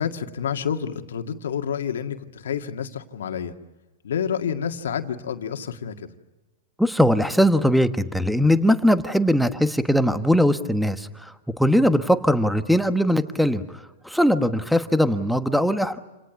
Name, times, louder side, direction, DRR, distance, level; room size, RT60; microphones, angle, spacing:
voice 1, 0.0-3.5 4.0-6.1 11.8-11.9, left 8 dB, 85° left, 6 dB, 1.9 m, -29 dB
voice 2, 6.8-16.0, equal, ahead, 9 dB, 1.2 m, -20 dB
28.0 x 18.5 x 9.6 m, 1.1 s
hypercardioid pair, 130°, 0 cm